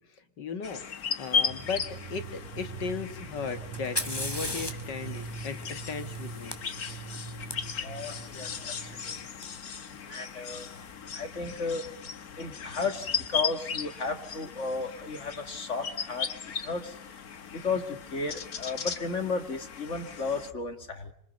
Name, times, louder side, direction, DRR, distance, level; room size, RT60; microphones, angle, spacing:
voice 1, 0.1-6.5 8.6-8.7, left 5 dB, 90° left, 10 dB, 2.4 m, -37 dB
sound 1, 0.6-20.5, left 6 dB, 60° left, 1.8 m, -37 dB
sound 2, 1.4-9.3, right 5 dB, 40° right, 6.1 m, -42 dB
Fire, 3.7-7.5 9.4-9.5 10.4-10.8, left 1 dB, 15° left, 2.3 m, -37 dB
voice 2, 7.4-9.8 10.0-10.7 11.1-17.0 17.5-21.1, left 4 dB, 45° left, 8 dB, 2.4 m, -34 dB
26.5 x 25.5 x 5.3 m, 0.71 s
omnidirectional pair, 1.8 m